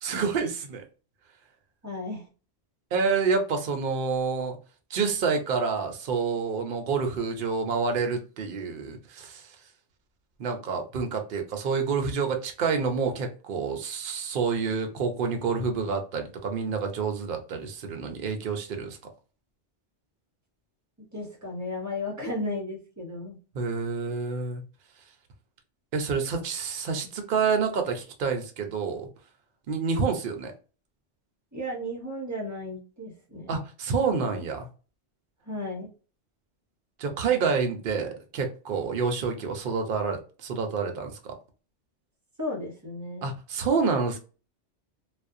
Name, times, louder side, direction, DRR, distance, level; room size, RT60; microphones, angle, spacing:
voice 1, 0.0-0.8 2.9-4.6 4.9-9.6 10.4-19.0 23.5-24.6 25.9-29.1 29.7-30.5 33.5-34.7 37.0-41.4 43.2-44.2, right 5 dB, 60° right, 0.7 m, -28 dB
voice 2, 1.8-2.3 21.1-23.4 31.5-33.6 35.4-35.9 42.4-43.3, left 1 dB, 20° right, 0.5 m, -34 dB
2.4 x 2.0 x 2.5 m
omnidirectional pair, 1.1 m